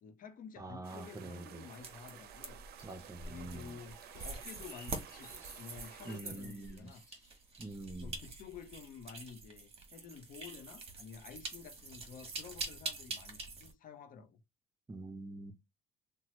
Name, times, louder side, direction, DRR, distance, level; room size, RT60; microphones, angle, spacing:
voice 1, 0.0-2.6 3.3-7.0 8.0-14.4, left 6 dB, 55° left, 0.6 m, -51 dB
voice 2, 0.6-1.7 2.8-3.8 6.0-6.9 7.6-8.2 14.9-15.5, right 2 dB, 20° right, 0.5 m, -45 dB
sound 1, 0.8-6.2, right 9 dB, 70° right, 0.5 m, -53 dB
sound 2, 1.7-13.7, right 3 dB, 35° right, 0.9 m, -46 dB
sound 3, 3.7-9.0, left 4 dB, 20° left, 1.2 m, -63 dB
2.8 x 2.2 x 3.0 m
cardioid pair, 110°, 17 cm